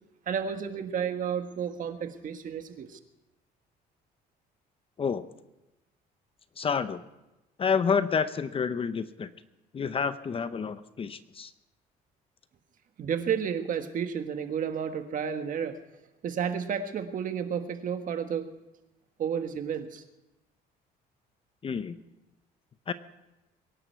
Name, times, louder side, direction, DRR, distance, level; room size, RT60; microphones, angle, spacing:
voice 1, 0.3-3.0 13.0-15.8 16.2-18.5 19.2-20.0, right 7 dB, 50° right, 7 dB, 1.5 m, -31 dB
voice 2, 6.6-7.0 7.6-9.3 9.7-11.5 21.6-22.0 22.9-23.0, left 6 dB, 35° left, 13 dB, 0.8 m, -29 dB
23.0 x 11.0 x 4.6 m, 0.98 s
cardioid pair, 110°, 17 cm